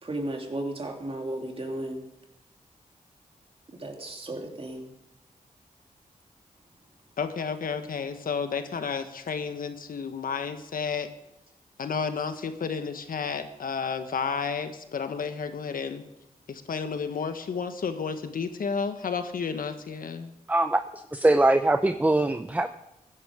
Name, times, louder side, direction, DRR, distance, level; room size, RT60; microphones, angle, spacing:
voice 1, 0.0-2.1 3.8-4.9, right 1 dB, 40° right, 2 dB, 2.8 m, -34 dB
voice 2, 7.2-11.1 11.8-16.0 16.5-20.3, left 5 dB, 75° left, 9 dB, 1.3 m, -31 dB
voice 3, 20.5-20.8 21.1-22.7, right 2 dB, 10° right, 9 dB, 0.7 m, -22 dB
15.5 x 10.5 x 5.1 m, 0.85 s
cardioid pair, 60°, 15 cm